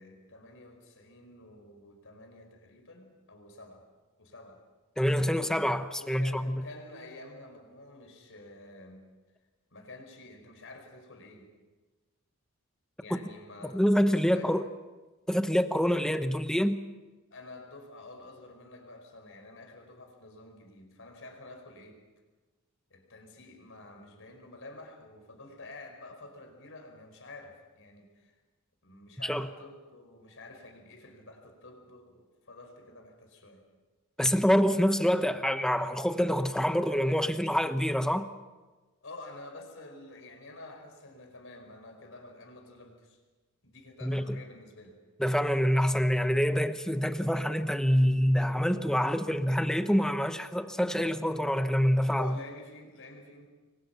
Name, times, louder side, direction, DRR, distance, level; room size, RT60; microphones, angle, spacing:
voice 1, 0.0-3.9 4.2-4.6 5.9-9.1 9.7-11.5 13.0-14.6 17.3-22.0 22.9-28.3 28.8-33.6 39.0-43.2 43.6-45.0 52.2-53.5, left 2 dB, 60° left, 5.0 m, -49 dB
voice 2, 5.0-6.6 13.6-14.6 15.3-16.8 29.2-29.5 34.2-38.3 44.0-44.4 45.2-52.4, equal, 5° left, 1.0 m, -26 dB
28.0 x 23.0 x 5.9 m
head